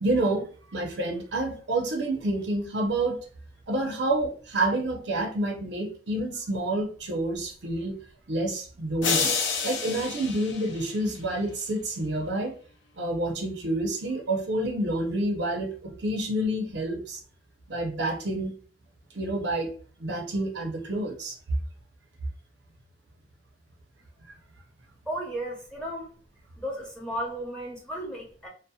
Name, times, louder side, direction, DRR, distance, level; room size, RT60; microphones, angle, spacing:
voice 1, 0.0-3.2 3.7-8.0 8.3-9.4 9.6-12.6 13.0-17.2 17.7-18.5 19.1-19.7 20.0-21.4, right 1 dB, 65° right, 1 dB, 0.6 m, -28 dB
sound 1, 9.0-11.3, left 5 dB, 75° left, 0.5 m, -29 dB
voice 2, 25.1-26.1 26.6-28.5, right 1 dB, 5° left, -3 dB, 0.7 m, -34 dB
2.7 x 2.1 x 2.2 m, 0.40 s
head